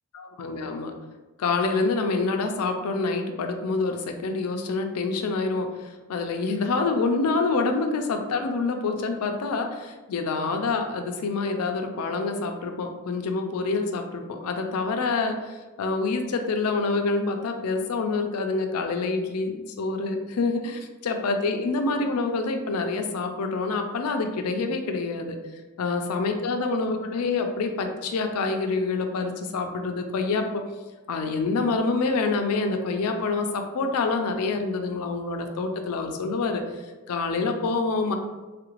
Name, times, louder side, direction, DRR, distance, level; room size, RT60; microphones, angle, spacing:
voice 1, 0.1-0.9 1.4-5.7 6.1-25.4 25.8-30.6 31.1-36.6 37.1-38.2, left 3 dB, 90° left, 5 dB, 0.4 m, -27 dB
3.2 x 2.4 x 3.1 m, 1.2 s
head